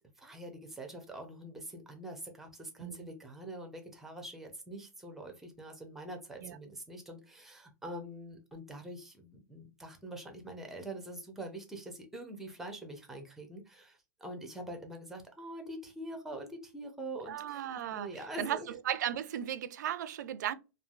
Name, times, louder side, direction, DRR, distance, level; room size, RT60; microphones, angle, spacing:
voice 1, 0.2-17.6 17.9-18.7, right 1 dB, 5° right, 0.7 m, -44 dB
voice 2, 17.3-18.1 18.4-20.6, right 10 dB, 70° right, 0.4 m, -36 dB
3.2 x 2.4 x 2.4 m
hypercardioid pair, 150°, 10 cm